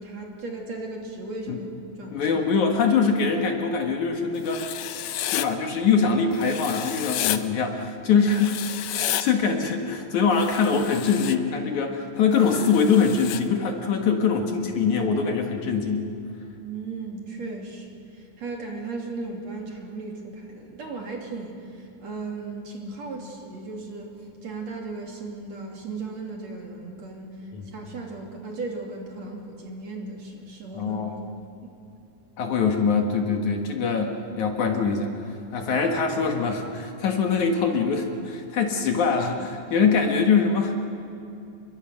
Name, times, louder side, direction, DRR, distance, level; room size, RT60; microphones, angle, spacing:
voice 1, 0.0-1.7 2.0-2.3 16.6-24.2 24.4-27.4 27.7-31.0, right 3 dB, 50° right, 0 dB, 3.9 m, -36 dB
voice 2, 2.1-4.8 5.3-8.7 8.9-16.1 27.5-27.7 30.7-31.2 32.4-35.1 35.5-40.8, left 5 dB, 60° left, 3 dB, 2.8 m, -23 dB
Writing, 4.4-5.5 6.4-7.4 8.3-9.2 10.3-11.4 12.4-13.4, left 12 dB, 75° left, 1.6 m, -31 dB
30.0 x 23.0 x 6.5 m, 2.7 s
omnidirectional pair, 4.1 m